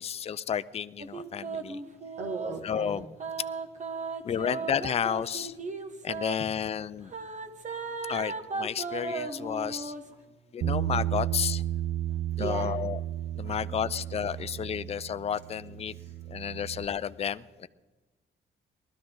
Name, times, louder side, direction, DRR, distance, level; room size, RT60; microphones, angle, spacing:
voice 1, 0.0-1.8 2.6-3.0 4.2-5.5 6.0-7.1 8.1-9.9 10.5-11.6 12.4-13.0 13.4-15.9 16.3-17.7, left 8 dB, 30° left, 15 dB, 0.4 m, -31 dB
sound 1, 1.0-2.6 3.2-6.4 7.1-10.1, right 4 dB, 40° right, 1.3 m, -36 dB
voice 2, 2.2-3.1 6.4-6.5 12.4-12.7 13.4-13.6 14.2-14.6 16.0-16.1, right 3 dB, 65° right, -1 dB, 1.8 m, -37 dB
Bass guitar, 10.6-16.9, right 13 dB, 85° right, 1.0 m, -33 dB
20.0 x 12.5 x 3.9 m, 1.2 s
cardioid pair, 90°, 20 cm